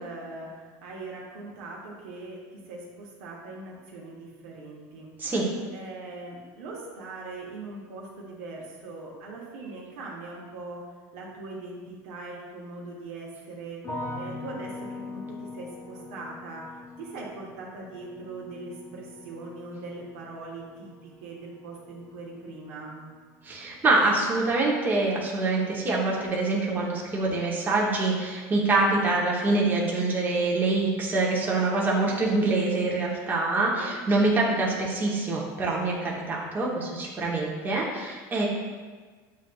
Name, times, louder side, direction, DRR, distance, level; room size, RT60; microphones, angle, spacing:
voice 1, 0.0-5.1 5.7-10.8 11.1-13.9 14.1-16.7 17.0-23.1 33.8-34.0, right 3 dB, 75° right, -2 dB, 1.1 m, -41 dB
sound 1, 13.8-24.9 25.2-25.9, left 2 dB, 30° left, 0.9 m, -43 dB
voice 2, 23.4-38.5, right 2 dB, 20° right, -3 dB, 0.8 m, -25 dB
7.4 x 2.5 x 2.2 m, 1.5 s
supercardioid pair, 120°, 9 cm